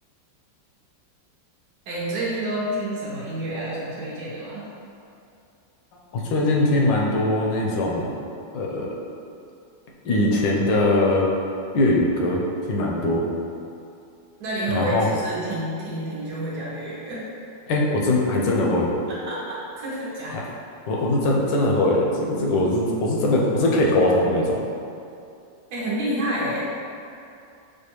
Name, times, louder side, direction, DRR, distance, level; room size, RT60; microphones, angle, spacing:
voice 1, 1.9-4.7 14.4-17.3 19.1-20.4 25.7-26.6, right 1 dB, 70° right, -8 dB, 1.3 m, -29 dB
voice 2, 6.1-8.1 8.5-9.0 10.0-11.3 11.7-12.4 12.7-13.3 14.7-15.1 17.7-18.9 20.9-24.6, left 1 dB, 80° left, -2 dB, 1.3 m, -21 dB
5.0 x 2.2 x 2.9 m, 2.6 s
omnidirectional pair, 2.0 m